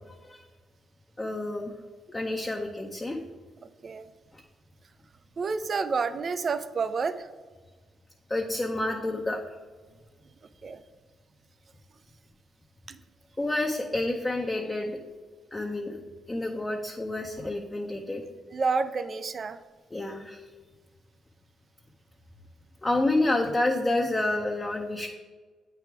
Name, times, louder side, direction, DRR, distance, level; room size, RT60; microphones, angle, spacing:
voice 1, 0.1-0.5 1.2-1.7 2.1-3.2 8.3-9.4 13.4-15.0 15.5-16.0 16.3-18.2 19.9-20.5 22.8-25.1, left 2 dB, 20° left, 0 dB, 0.6 m, -29 dB
voice 2, 5.4-7.3 10.6-10.8 12.9-13.0 18.5-19.6, right 4 dB, 45° right, 11 dB, 0.4 m, -29 dB
8.1 x 3.4 x 4.5 m, 1.4 s
cardioid pair, 90°, 0 cm